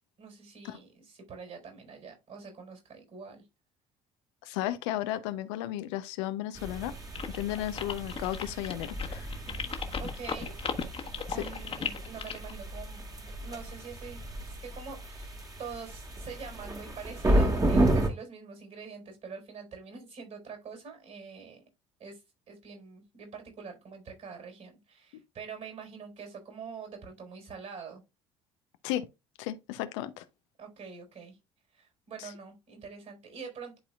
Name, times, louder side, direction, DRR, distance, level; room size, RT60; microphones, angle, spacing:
voice 1, 0.2-3.5 10.0-10.5 11.3-21.6 22.0-22.2 22.5-28.0 30.6-31.4 31.7-33.8, right 5 dB, 50° right, 4.5 m, -45 dB
voice 2, 4.4-6.9 7.3-9.3 11.3-11.4 28.8-29.1 29.4-30.2 32.2-32.3, left 13 dB, 70° left, 0.7 m, -34 dB
sound 1, 6.6-18.1, right 1 dB, 25° right, 1.8 m, -32 dB
sound 2, 7.2-12.5, left 6 dB, 35° left, 1.3 m, -36 dB
11.0 x 4.2 x 2.4 m
figure-of-eight pair, 55°, 16 cm